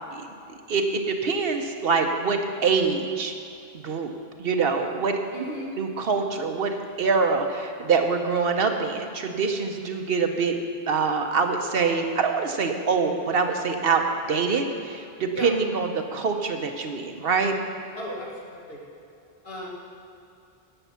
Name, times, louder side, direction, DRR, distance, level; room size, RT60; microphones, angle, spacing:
voice 1, 0.7-3.3 3.7-4.1 4.4-5.2 5.8-10.6 10.9-17.6, right 5 dB, 65° right, 5 dB, 1.0 m, -25 dB
voice 2, 5.3-5.8 15.3-15.5 18.0-18.8 19.4-19.7, right 1 dB, 65° left, -3 dB, 2.1 m, -35 dB
11.0 x 8.1 x 5.6 m, 2.5 s
omnidirectional pair, 1.1 m